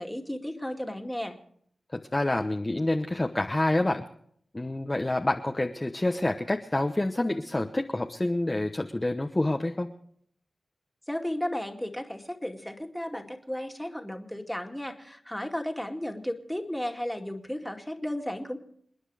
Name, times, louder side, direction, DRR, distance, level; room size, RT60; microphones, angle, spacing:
voice 1, 0.0-1.4 11.1-18.6, left 1 dB, 5° left, 4 dB, 2.2 m, -34 dB
voice 2, 1.9-4.0 4.5-9.9, left 1 dB, 25° left, 3 dB, 1.0 m, -27 dB
28.5 x 9.9 x 4.9 m, 0.65 s
wide cardioid pair, 70°, 0 cm